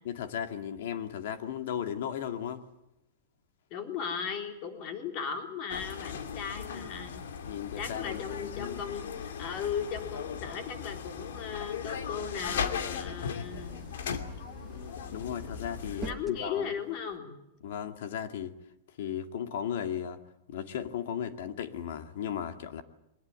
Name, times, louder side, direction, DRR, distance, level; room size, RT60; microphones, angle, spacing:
voice 1, 0.0-2.6 7.5-8.8 15.1-16.7 17.6-18.5 19.0-20.2 20.5-22.8, left 9 dB, 60° left, 2.3 m, -36 dB
voice 2, 3.7-7.2 7.8-13.8 16.0-17.4, left 7 dB, 30° left, 3.6 m, -37 dB
sound 1, 5.7-16.1, left 7 dB, 75° left, 2.6 m, -38 dB
sound 2, 10.9-17.2, right 3 dB, 10° right, 1.4 m, -49 dB
23.5 x 20.5 x 9.1 m
supercardioid pair, 170°, 0 cm